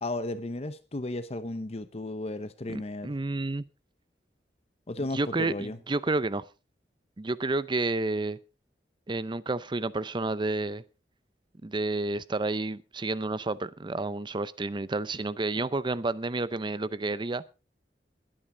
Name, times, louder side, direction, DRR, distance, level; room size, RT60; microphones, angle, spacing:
voice 1, 0.0-3.1 4.9-5.8 15.6-15.7, left 2 dB, 35° left, 0.8 m, -34 dB
voice 2, 2.7-3.6 5.0-6.5 7.2-8.4 9.1-10.8 11.6-17.4, right 2 dB, 25° right, 0.6 m, -30 dB
21.0 x 8.9 x 3.8 m
head